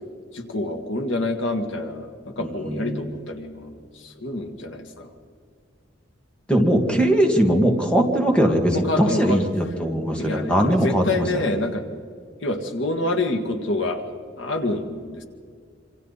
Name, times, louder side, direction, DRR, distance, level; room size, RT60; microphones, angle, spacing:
voice 1, 0.3-5.1 8.7-9.5 10.2-11.8 12.4-14.0 14.4-15.2, left 2 dB, 85° left, 5 dB, 2.0 m, -27 dB
voice 2, 2.6-3.0 6.5-11.5, right 1 dB, 5° left, 2 dB, 2.1 m, -20 dB
27.0 x 26.0 x 4.2 m, 2.2 s
head